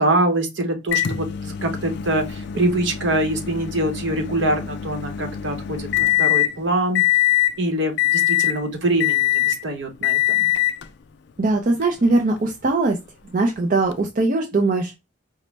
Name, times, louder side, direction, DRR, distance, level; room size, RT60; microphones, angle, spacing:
voice 1, 0.0-7.0 7.6-10.5, right 1 dB, 60° right, 0.9 m, -24 dB
Microwave oven, 0.9-6.6 7.0-7.6 8.0-8.6 9.0-9.6 10.0-10.9 11.8-11.9 13.9-14.0, left 14 dB, 55° left, 0.4 m, -22 dB
voice 2, 11.4-13.0 13.3-14.9, right 2 dB, 40° right, 0.4 m, -20 dB
5.0 x 2.1 x 3.2 m
head